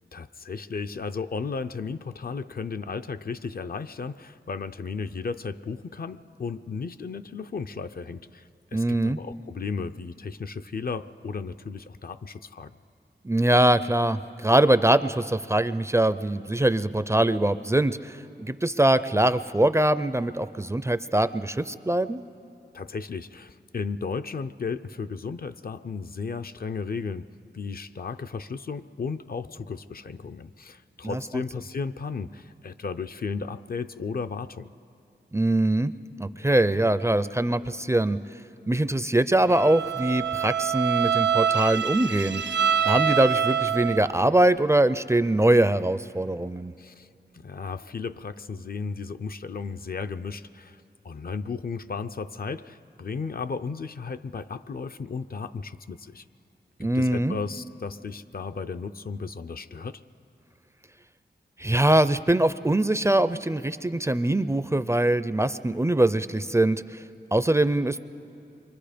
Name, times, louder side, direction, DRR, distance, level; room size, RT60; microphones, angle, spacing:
voice 1, 0.1-12.7 22.7-27.3 27.5-34.7 46.8-47.1 47.4-50.8 51.0-56.2 56.9-60.0, left 5 dB, 55° left, 10 dB, 0.5 m, -34 dB
voice 2, 8.7-9.2 13.2-22.2 31.0-31.2 35.3-35.9 36.2-38.2 38.7-42.4 42.9-46.7 56.8-57.4 61.6-67.0 67.3-68.0, right 1 dB, 15° right, 13 dB, 0.4 m, -23 dB
Bowed string instrument, 39.5-44.2, right 8 dB, 75° right, 0.4 m, -25 dB
29.0 x 24.0 x 5.1 m, 2.6 s
wide cardioid pair, 105°, 18 cm